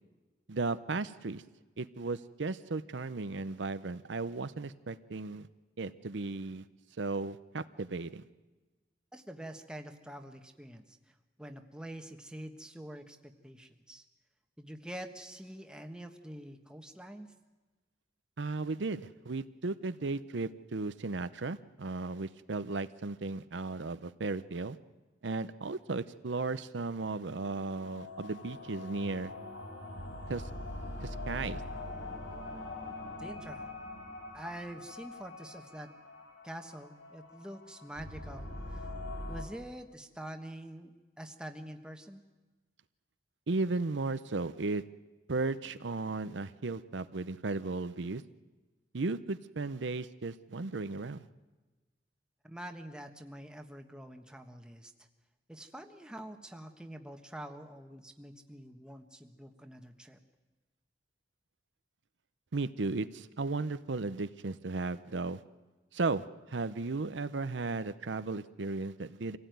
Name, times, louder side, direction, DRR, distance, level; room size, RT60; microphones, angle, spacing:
voice 1, 0.5-1.4 1.8-5.5 5.8-6.6 7.0-8.2 18.4-24.8 25.2-29.3 30.3-30.5 31.0-31.6 43.5-44.8 45.3-48.2 48.9-51.2 62.5-65.4 65.9-69.4, right 3 dB, 80° right, 13 dB, 0.7 m, -35 dB
voice 2, 9.1-14.0 14.6-17.3 33.2-33.7 34.3-35.9 36.4-38.9 39.3-42.2 52.4-54.9 55.5-60.2, right 1 dB, 5° right, 5 dB, 1.3 m, -46 dB
sound 1, 27.2-39.5, left 2 dB, 90° left, 4.0 m, -43 dB
25.5 x 16.5 x 9.3 m, 1.2 s
head